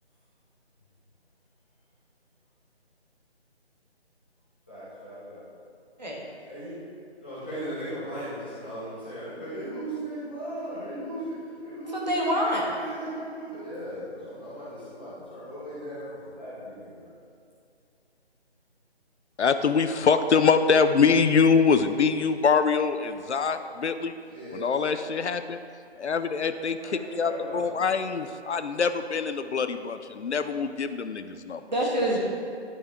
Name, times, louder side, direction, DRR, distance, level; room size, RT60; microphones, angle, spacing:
voice 1, 4.7-5.4 6.5-6.7 7.2-17.1 24.3-24.6 26.8-28.3, right 1 dB, 10° left, -14 dB, 1.1 m, -37 dB
voice 2, 11.9-12.6 31.7-32.2, equal, 40° right, -3 dB, 1.5 m, -26 dB
voice 3, 19.4-24.1 24.5-25.6 26.0-31.6, left 5 dB, 85° left, 10 dB, 0.6 m, -24 dB
11.5 x 5.7 x 3.7 m, 2.4 s
figure-of-eight pair, 175°, 33 cm